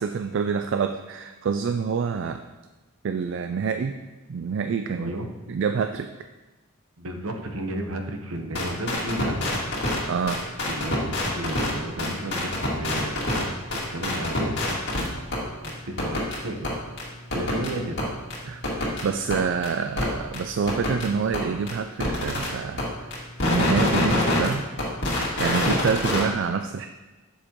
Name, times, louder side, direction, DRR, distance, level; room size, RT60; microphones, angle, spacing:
voice 1, 0.0-2.4 3.0-4.0 4.3-5.1 5.5-6.1 10.1-10.5 18.5-18.6 19.0-24.6 25.1-26.9, right 6 dB, 55° right, 7 dB, 0.3 m, -27 dB
voice 2, 4.9-5.3 7.0-9.7 10.7-14.7 15.2-16.9 17.3-18.1, right 1 dB, 70° right, 3 dB, 1.0 m, -33 dB
sound 1, 8.5-10.0 10.3-11.7 12.0-13.4 13.7-15.1 15.3-15.4 15.6-15.7 16.0-16.4 16.6-16.7 17.0-17.1 17.3-17.7 18.0-18.1 18.3-18.4 18.6-19.0 19.3-19.4 19.6-19.7 20.0-20.1 20.3-20.4 20.7-21.1 21.3-21.4 21.7-21.8 22.0-22.5 22.8-22.9 23.1-24.5 24.8-26.2, left 1 dB, 55° left, 2.3 m, -25 dB
10.0 x 7.2 x 3.0 m, 1.2 s
head